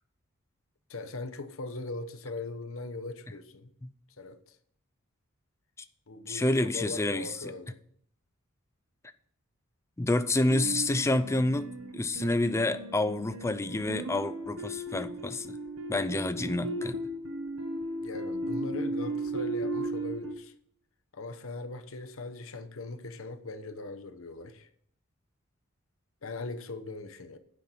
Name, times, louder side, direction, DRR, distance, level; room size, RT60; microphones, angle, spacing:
voice 1, 0.9-3.7 4.2-4.6 6.1-7.8 10.4-10.5 18.0-20.5 21.1-24.7 26.2-27.4, left 3 dB, 70° left, 0.9 m, -40 dB
voice 2, 6.3-7.3 10.0-15.6 15.9-16.9, left 2 dB, 15° left, 0.4 m, -28 dB
sound 1, 10.5-20.3, right 1 dB, 70° right, 1.4 m, -36 dB
8.5 x 5.9 x 7.1 m
head